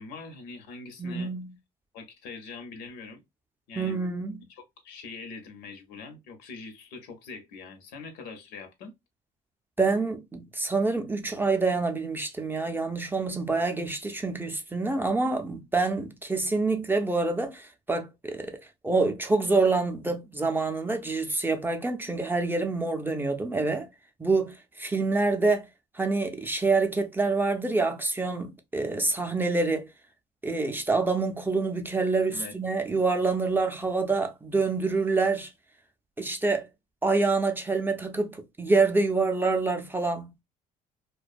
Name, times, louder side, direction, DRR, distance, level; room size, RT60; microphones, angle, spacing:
voice 1, 0.0-1.3 1.9-3.2 3.7-4.0 4.5-8.9 32.3-32.5, left 4 dB, 90° left, 0.8 m, -43 dB
voice 2, 1.0-1.5 3.8-4.4 9.8-18.6 18.8-23.9 24.2-25.7 25.9-29.9 30.4-35.5 36.2-36.7 37.0-40.4, right 3 dB, 10° right, 0.4 m, -26 dB
2.4 x 2.2 x 2.4 m
cardioid pair, 110°, 17 cm